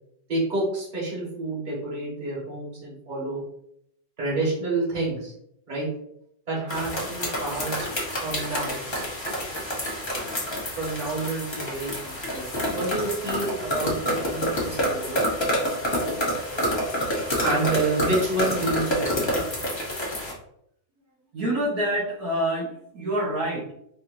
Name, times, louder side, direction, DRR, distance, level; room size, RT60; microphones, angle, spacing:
voice 1, 0.3-3.4 4.2-5.3 5.7-5.9 6.5-7.9 8.2-8.8 10.8-12.4 12.7-15.2 17.4-19.5, right 2 dB, 30° right, -6 dB, 1.5 m, -29 dB
sound 1, 6.7-20.3, equal, 25° left, 0.6 m, -28 dB
voice 2, 21.3-23.7, right 1 dB, 65° right, -7 dB, 1.5 m, -27 dB
4.8 x 2.8 x 2.6 m, 0.72 s
omnidirectional pair, 1.9 m